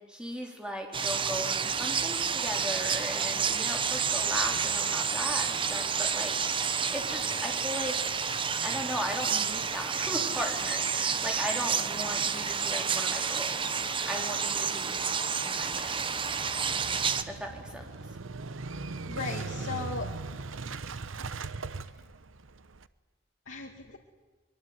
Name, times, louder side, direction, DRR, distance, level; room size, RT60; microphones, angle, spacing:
voice 1, 0.1-8.0 8.6-13.8 14.1-15.0 15.4-16.1 17.2-17.9, equal, 5° right, 2 dB, 3.8 m, -37 dB
sound 1, 0.9-17.2, right 6 dB, 25° right, 1.0 m, -30 dB
Motorcycle / Engine starting, 15.6-22.9, right 3 dB, 90° right, 0.9 m, -39 dB
voice 2, 18.8-20.1 23.5-24.0, left 4 dB, 85° left, -1 dB, 2.4 m, -37 dB
24.5 x 22.5 x 9.7 m, 1.2 s
head